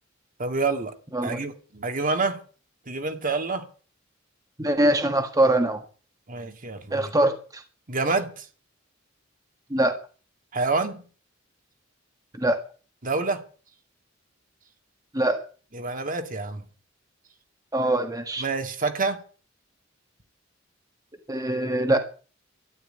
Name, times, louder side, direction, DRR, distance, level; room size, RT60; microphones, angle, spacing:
voice 1, 0.4-0.9 1.2-2.4 2.9-3.7 6.3-7.1 7.9-8.5 10.5-11.1 13.0-13.4 15.7-16.6 18.4-19.2, right 3 dB, 45° right, 2.2 m, -27 dB
voice 2, 4.6-5.8 6.9-7.6 9.7-10.0 12.3-12.6 15.1-15.4 17.7-18.4 21.3-22.0, right 1 dB, 20° right, 1.6 m, -23 dB
13.0 x 11.5 x 8.9 m
head